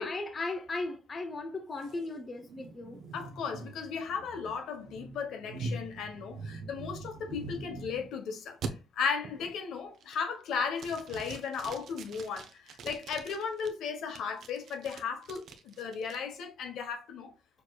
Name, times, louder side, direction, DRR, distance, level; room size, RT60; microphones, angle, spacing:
voice 1, 0.0-3.0, left 2 dB, 35° left, 0.7 m, -37 dB
sound 1, 1.8-8.1 8.6-8.7 9.2-9.6 10.0-10.4 10.8-13.7 14.2-16.2, right 3 dB, 70° right, 0.7 m, -43 dB
voice 2, 3.1-17.3, left 6 dB, 80° left, 1.1 m, -36 dB
6.5 x 3.0 x 2.3 m
cardioid pair, 90°, 0 cm